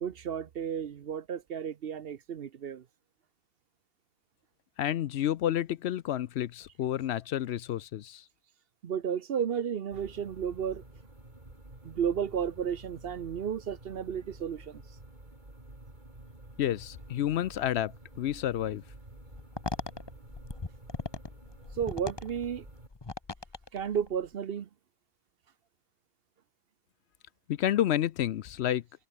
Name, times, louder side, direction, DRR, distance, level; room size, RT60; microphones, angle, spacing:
voice 1, 0.0-2.8 8.8-10.8 11.8-14.8 21.8-22.7 23.7-24.7, right 8 dB, 55° right, 0.9 m, -33 dB
voice 2, 4.8-8.2 16.6-17.9 18.2-18.8 27.5-28.8, left 11 dB, 70° left, 0.8 m, -30 dB
sound 1, 9.9-22.9, right 2 dB, 40° right, 4.4 m, -50 dB
sound 2, 19.2-24.3, left 3 dB, 20° left, 1.0 m, -40 dB
omnidirectional pair, 1.2 m